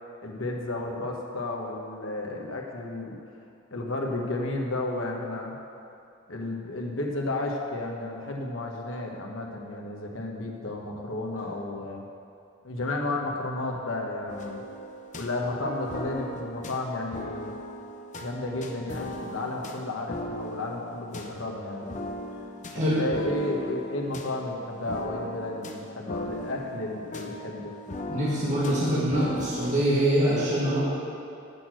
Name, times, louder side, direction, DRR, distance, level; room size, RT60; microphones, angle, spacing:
voice 1, 0.2-3.2 3.7-5.5 6.3-12.1 12.6-14.6 15.1-17.5 18.2-22.0 22.8-27.7, left 2 dB, 85° left, 0 dB, 1.4 m, -32 dB
sound 1, 14.3-29.9, left 1 dB, 40° left, 0.8 m, -38 dB
voice 2, 28.1-30.8, right 1 dB, 40° right, -9 dB, 2.0 m, -24 dB
8.4 x 6.4 x 7.6 m, 2.6 s
head